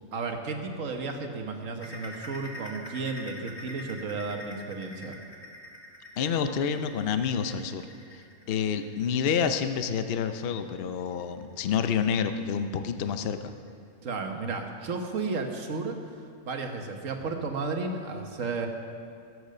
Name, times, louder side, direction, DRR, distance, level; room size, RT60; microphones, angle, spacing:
voice 1, 0.1-5.2 14.0-16.0 16.4-18.7, right 4 dB, 60° right, 4 dB, 1.6 m, -33 dB
sound 1, 1.8-13.1 13.5-13.7 14.1-14.2 14.7-14.8, equal, 15° left, 1.6 m, -46 dB
voice 2, 6.2-7.9 8.1-8.2 8.5-13.5, left 7 dB, 55° left, 9 dB, 0.7 m, -28 dB
17.0 x 8.1 x 6.7 m, 2.3 s
omnidirectional pair, 1.5 m